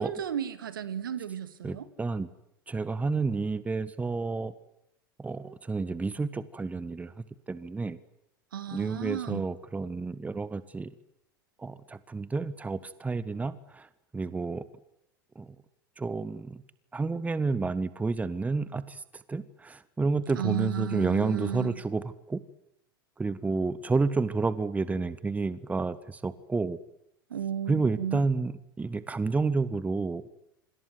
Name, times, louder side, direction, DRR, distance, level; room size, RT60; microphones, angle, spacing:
voice 1, 0.0-1.9 8.5-9.4 20.3-21.8 27.3-28.2, right 9 dB, 70° right, 13 dB, 2.5 m, -33 dB
voice 2, 1.6-2.3 2.7-4.5 5.2-7.1 7.5-8.0 8.7-10.9 11.6-13.9 14.1-14.7 15.3-15.5 16.0-16.6 16.9-19.0 19.3-22.4 23.2-26.8 27.7-30.2, right 3 dB, 10° right, 16 dB, 1.4 m, -30 dB
27.0 x 26.0 x 8.1 m, 0.80 s
figure-of-eight pair, 80°, 12 cm